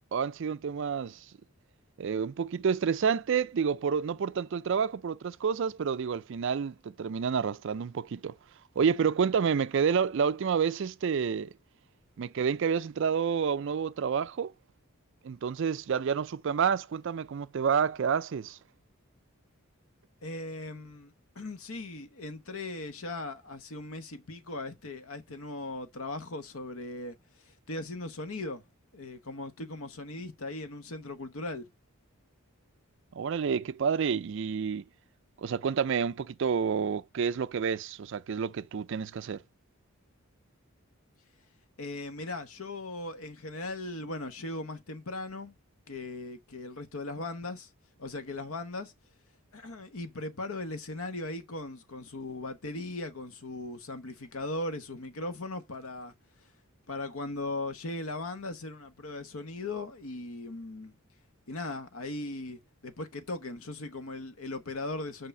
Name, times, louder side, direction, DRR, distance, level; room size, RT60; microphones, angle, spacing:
voice 1, 0.1-1.2 2.0-8.4 8.8-11.5 12.2-14.5 15.2-18.6 33.1-34.8 35.4-39.4, right 6 dB, 60° right, 0.4 m, -29 dB
voice 2, 20.2-27.2 27.4-28.6 28.9-31.7 41.8-45.5 45.9-47.7 48.0-48.9 49.5-56.1 56.9-60.9 61.5-65.3, left 2 dB, 75° left, 1.0 m, -38 dB
5.7 x 5.6 x 5.2 m
head